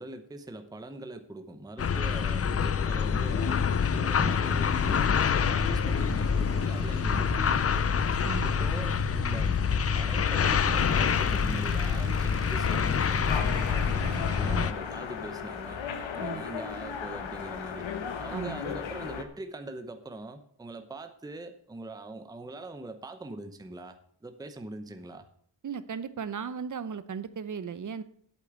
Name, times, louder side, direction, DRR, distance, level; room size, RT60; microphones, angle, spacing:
voice 1, 0.0-5.1 5.5-8.0 8.4-9.6 10.0-15.8 16.2-17.9 18.2-25.3, right 2 dB, 10° right, 8 dB, 0.8 m, -42 dB
sound 1, 1.8-14.7, left 6 dB, 35° left, 0.5 m, -26 dB
sound 2, 4.5-15.6, right 6 dB, 60° right, 1.2 m, -42 dB
voice 2, 8.2-8.5 14.5-14.7 16.1-16.4 18.3-18.6 25.6-28.0, right 6 dB, 40° right, 13 dB, 0.8 m, -36 dB
sound 3, 13.3-19.2, left 7 dB, 80° left, 1.4 m, -36 dB
8.4 x 8.4 x 8.1 m, 0.62 s
wide cardioid pair, 155°, 45 cm